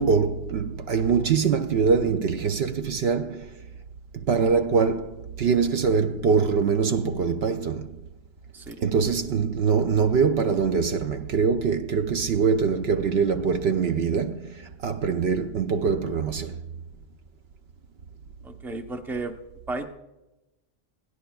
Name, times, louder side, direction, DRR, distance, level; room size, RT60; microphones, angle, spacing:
voice 1, 0.0-3.5 4.1-8.0 8.8-16.6, right 5 dB, 65° right, 0.8 m, -23 dB
voice 2, 18.4-19.3 19.7-19.9, right 3 dB, ahead, 0.7 m, -33 dB
21.5 x 16.5 x 2.3 m
omnidirectional pair, 1.2 m